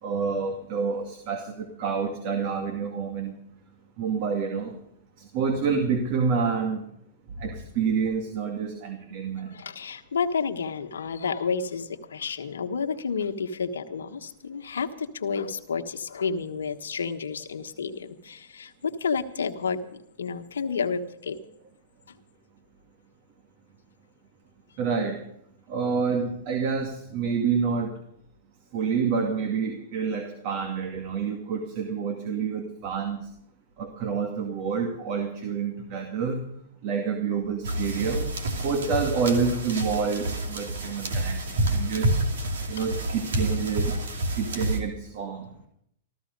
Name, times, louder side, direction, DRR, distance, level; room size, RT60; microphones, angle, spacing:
voice 1, 0.0-3.4 4.0-4.7 5.2-6.8 7.4-9.5 24.8-25.2 25.7-27.9 28.7-33.2 33.8-36.5 36.8-41.4 41.7-42.2 42.7-44.0 44.3-45.5, right 5 dB, 50° right, 4 dB, 2.3 m, -28 dB
voice 2, 9.3-21.4 22.1-22.2 42.8-42.9, left 5 dB, 85° left, 5 dB, 1.3 m, -30 dB
sound 1, 37.6-44.8, right 1 dB, 80° right, 2.6 m, -28 dB
15.0 x 14.0 x 5.3 m, 0.71 s
hypercardioid pair, 120°, 0 cm